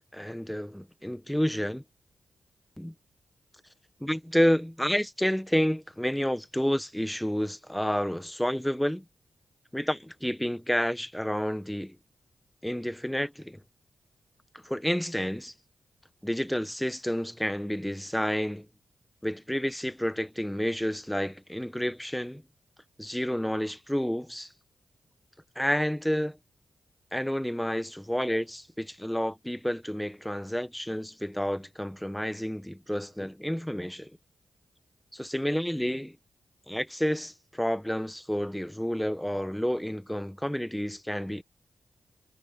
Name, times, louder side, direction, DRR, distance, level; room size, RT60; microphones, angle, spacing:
voice 1, 0.1-1.8 2.8-2.9 4.0-9.0 9.7-12.0 12.6-13.6 14.6-15.5 16.2-18.7 19.2-22.4 23.0-24.5 25.5-26.4 27.1-34.1 35.1-36.2 36.7-41.4, equal, 5° left, 1.5 m, -30 dB
cardioid pair, 55°, 0 cm